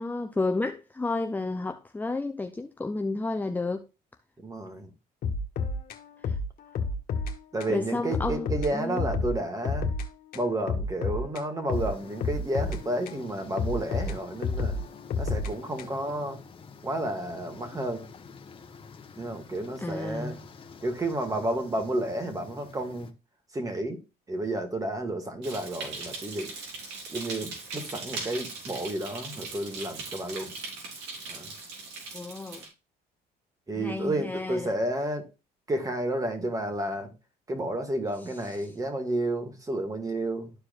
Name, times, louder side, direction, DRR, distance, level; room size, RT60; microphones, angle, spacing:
voice 1, 0.0-3.9 6.2-6.4 7.7-9.0 19.8-20.4 32.1-32.7 33.7-34.7 38.6-38.7, left 3 dB, 10° left, 0.6 m, -31 dB
voice 2, 4.4-4.9 7.5-9.9 10.3-14.8 15.2-16.4 16.8-18.1 19.2-20.4 20.8-23.1 23.5-24.0 24.3-26.5 27.1-30.5 31.3-31.5 33.7-35.3 35.7-37.1 37.5-40.5, right 1 dB, 20° right, 2.1 m, -31 dB
sound 1, 5.2-7.3 7.6-7.8 8.1-10.1 10.3-13.2 13.6-16.1, left 4 dB, 60° left, 1.5 m, -31 dB
sound 2, 11.7-23.1, left 5 dB, 30° left, 1.1 m, -49 dB
sound 3, 25.4-32.7, right 3 dB, 85° right, 3.7 m, -39 dB
13.0 x 4.8 x 2.5 m
cardioid pair, 110°, 17 cm